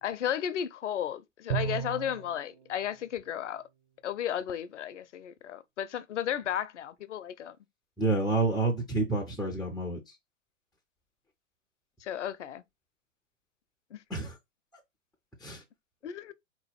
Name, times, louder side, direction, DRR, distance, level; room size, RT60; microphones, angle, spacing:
voice 1, 0.0-3.6 4.0-7.6 12.0-12.6 13.9-14.0 16.0-16.3, left 10 dB, 65° left, 0.7 m, -34 dB
Bowed string instrument, 1.5-2.4, right 9 dB, 45° right, 0.7 m, -33 dB
voice 2, 8.0-10.0 14.1-14.4 15.4-15.6, right 3 dB, ahead, 0.3 m, -28 dB
4.0 x 3.0 x 4.2 m
figure-of-eight pair, 105°, 38 cm